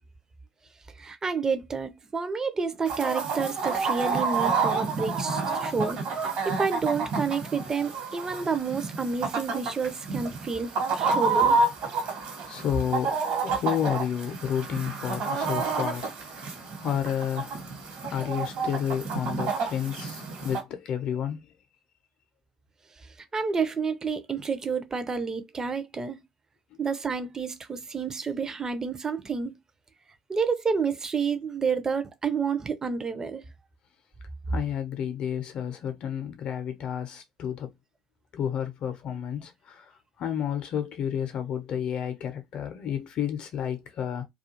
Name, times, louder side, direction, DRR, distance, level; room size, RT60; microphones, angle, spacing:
voice 1, 1.0-6.0 6.4-11.6 23.3-26.2 26.8-29.5 30.3-33.5, right 5 dB, 25° right, 0.5 m, -29 dB
Chicken rooster, 2.9-20.6, right 4 dB, 60° right, 1.2 m, -29 dB
voice 2, 12.4-17.6 18.1-21.4 34.5-37.7 38.3-39.9 40.2-44.2, left 9 dB, 50° left, 0.6 m, -31 dB
2.3 x 2.3 x 2.8 m
hypercardioid pair, 60°, 2 cm